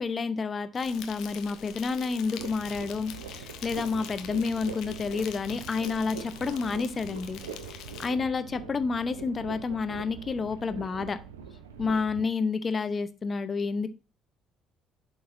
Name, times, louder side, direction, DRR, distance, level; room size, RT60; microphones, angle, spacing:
voice 1, 0.0-7.4 7.7-11.2 11.8-13.9, left 4 dB, 35° left, 11 dB, 0.7 m, -30 dB
Insect, 0.7-8.1, left 9 dB, 60° left, 0.8 m, -45 dB
sound 1, 2.4-12.2, right 6 dB, 75° right, 0.6 m, -43 dB
11.0 x 4.0 x 2.6 m, 0.32 s
figure-of-eight pair, 50°, 0 cm